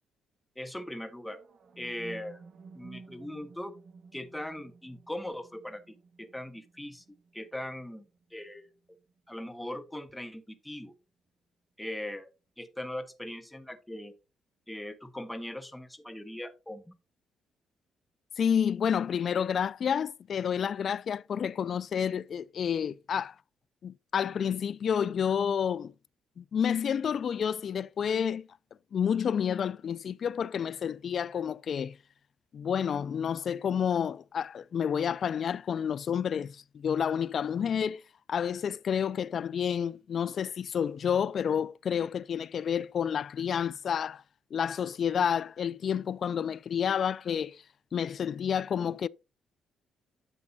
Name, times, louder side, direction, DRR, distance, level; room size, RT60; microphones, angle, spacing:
voice 1, 0.6-1.4 1.8-2.4 2.7-3.7 4.1-7.0 7.3-8.0 8.3-8.7 9.3-10.9 11.8-14.1 14.7-16.9, left 1 dB, 5° left, 1.3 m, -40 dB
sound 1, 1.2-9.2, right 4 dB, 50° right, 1.5 m, -53 dB
voice 2, 18.4-23.3 23.8-25.9 26.4-28.5 28.9-32.0 32.5-38.0 38.3-44.2 44.5-47.6 47.9-49.1, left 8 dB, 55° left, 0.3 m, -29 dB
9.7 x 7.4 x 2.7 m
cardioid pair, 90°, 0 cm